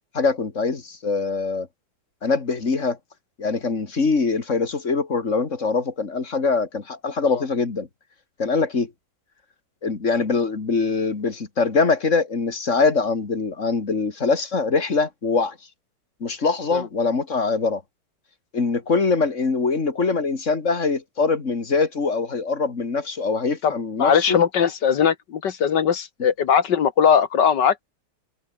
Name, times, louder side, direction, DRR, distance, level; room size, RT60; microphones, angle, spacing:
voice 1, 0.1-1.7 2.2-3.0 3.4-7.9 8.4-8.9 9.8-15.6 16.2-17.8 18.5-24.4, left 4 dB, 40° left, 2.8 m, -23 dB
voice 2, 24.0-27.8, left 7 dB, 65° left, 1.8 m, -20 dB
omnidirectional pair, 2.1 m